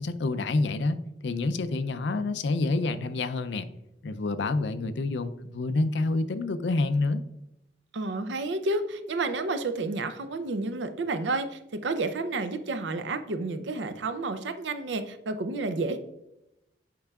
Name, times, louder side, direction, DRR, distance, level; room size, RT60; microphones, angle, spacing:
voice 1, 0.0-3.7 4.0-7.2, left 3 dB, 75° left, 12 dB, 0.5 m, -28 dB
voice 2, 7.9-16.0, right 3 dB, 85° right, 10 dB, 0.6 m, -30 dB
8.5 x 5.4 x 2.4 m, 0.88 s
head